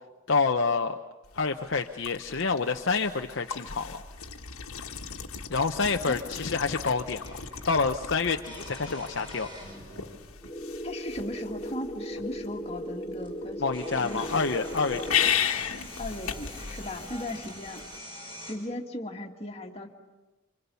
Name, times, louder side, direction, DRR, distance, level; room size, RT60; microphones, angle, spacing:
voice 1, 0.3-1.0 1.3-4.0 5.5-7.4 7.7-9.5 13.6-15.0, left 4 dB, 55° left, 4 dB, 0.8 m, -27 dB
male slurping water, 1.2-18.0, left 8 dB, 85° left, 1.5 m, -36 dB
sound 1, 7.2-7.7 8.4-10.2 11.2-11.3 12.7-12.8 13.2-18.5, equal, 20° right, 6.4 m, -45 dB
sound 2, 10.4-15.4, equal, 5° left, 1.5 m, -37 dB
voice 2, 10.8-13.6 14.0-14.4 16.0-17.8 18.4-19.9, left 1 dB, 30° left, 1 dB, 2.0 m, -37 dB
27.5 x 26.0 x 7.0 m, 1.1 s
head